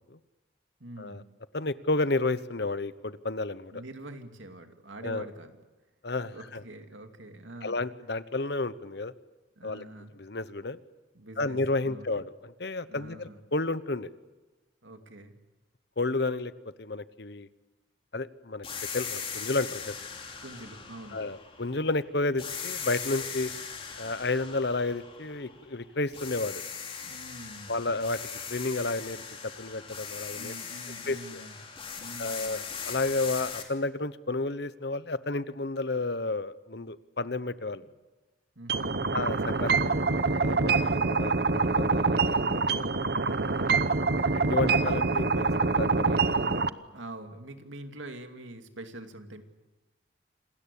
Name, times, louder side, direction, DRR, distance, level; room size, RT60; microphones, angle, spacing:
voice 1, 0.8-1.3 3.7-5.5 6.3-7.9 9.6-10.1 11.1-11.6 11.8-12.1 12.9-13.4 14.8-15.4 20.4-21.2 27.0-27.8 30.3-31.6 32.0-32.6 37.8-37.9 38.6-39.1 40.4-41.1 46.0-46.3 46.9-49.4, right 1 dB, 85° right, 6 dB, 2.6 m, -45 dB
voice 2, 1.5-3.8 5.0-5.3 6.0-6.6 7.6-9.1 9.6-9.8 10.2-10.8 11.4-14.1 16.0-16.5 16.8-17.5 18.1-18.7 18.9-20.0 21.1-23.5 24.0-26.6 27.7-28.2 28.5-30.5 31.0-31.5 32.2-37.8 39.1-42.4 42.7-42.9 44.4-46.2, left 2 dB, 60° left, 15 dB, 1.0 m, -31 dB
sound 1, 18.6-21.9 22.4-25.8 26.1-33.6, left 6 dB, 30° left, 3.1 m, -39 dB
sound 2, 38.7-46.7, right 4 dB, 55° right, 0.9 m, -25 dB
27.5 x 20.0 x 8.5 m, 1.2 s
head